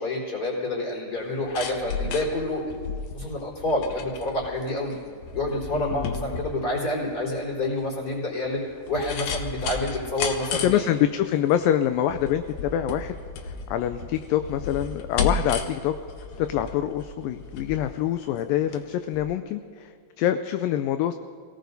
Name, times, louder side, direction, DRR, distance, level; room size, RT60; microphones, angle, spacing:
voice 1, 0.0-2.7 3.1-5.0 5.3-8.6 8.9-10.9, left 1 dB, 25° left, -4 dB, 4.4 m, -28 dB
sound 1, 1.2-18.8 19.1-19.2, left 5 dB, 65° left, 2.1 m, -34 dB
voice 2, 5.7-6.1 10.6-13.2 13.4-15.9 16.4-19.9 20.2-21.1, left 11 dB, 80° left, 9 dB, 2.2 m, -25 dB
29.5 x 18.0 x 2.7 m, 2.2 s
omnidirectional pair, 4.1 m